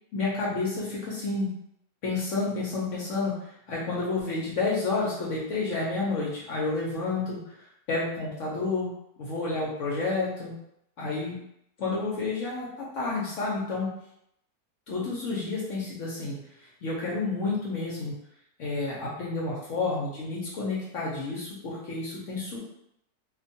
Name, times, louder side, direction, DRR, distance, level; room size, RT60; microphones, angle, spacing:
voice 1, 0.1-1.5 2.0-8.9 9.2-10.5 11.0-11.4 11.8-13.9 14.9-16.4 16.8-18.1 18.6-22.6, left 3 dB, 65° left, -5 dB, 0.8 m, -30 dB
2.5 x 2.2 x 2.6 m, 0.77 s
omnidirectional pair, 1.7 m